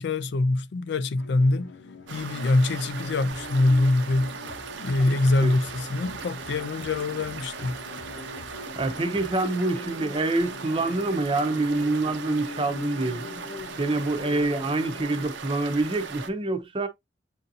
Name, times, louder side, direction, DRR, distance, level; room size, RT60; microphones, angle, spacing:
voice 1, 0.0-1.8 2.1-4.4 4.8-7.8, left 2 dB, 65° left, 0.4 m, -24 dB
sound 1, 1.2-15.3, left 2 dB, 90° left, 0.9 m, -43 dB
sound 2, 2.1-16.3, right 5 dB, 85° right, 0.7 m, -39 dB
sound 3, 3.3-9.5, left 1 dB, 10° left, 1.0 m, -48 dB
voice 2, 8.8-13.3 13.8-16.9, right 2 dB, 30° right, 0.6 m, -26 dB
7.7 x 2.7 x 2.6 m
head